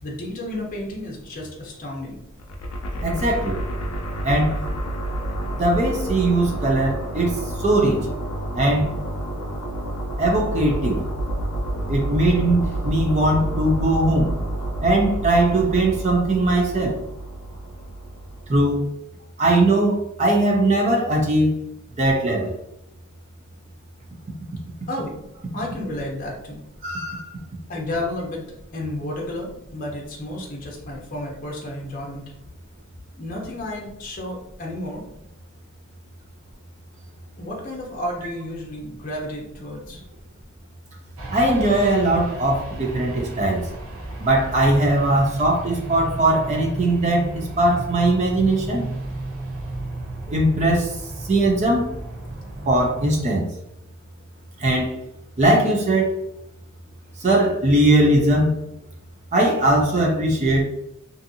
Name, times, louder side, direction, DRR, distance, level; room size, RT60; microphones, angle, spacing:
voice 1, 0.0-2.2 24.9-25.1 25.5-26.6 27.7-28.4 28.7-32.2 33.1-35.0 37.4-40.0, left 1 dB, 40° left, -2 dB, 0.6 m, -32 dB
sound 1, 2.4-18.6, right 1 dB, 80° left, 0.5 m, -29 dB
voice 2, 3.0-3.6 4.2-4.6 5.6-8.1 8.5-8.9 10.2-11.0 11.9-14.3 14.8-17.0 18.5-18.9 19.4-21.5 22.0-22.6 26.8-27.2 41.3-43.7 44.2-48.9 50.3-50.9 51.3-51.9 52.7-53.5 54.6-54.9 55.4-56.1 57.2-58.6 59.3-60.7, right 1 dB, 30° right, 0 dB, 0.4 m, -20 dB
sound 2, 41.2-53.2, right 2 dB, 75° right, 0.7 m, -34 dB
2.6 x 2.5 x 2.6 m, 0.79 s
head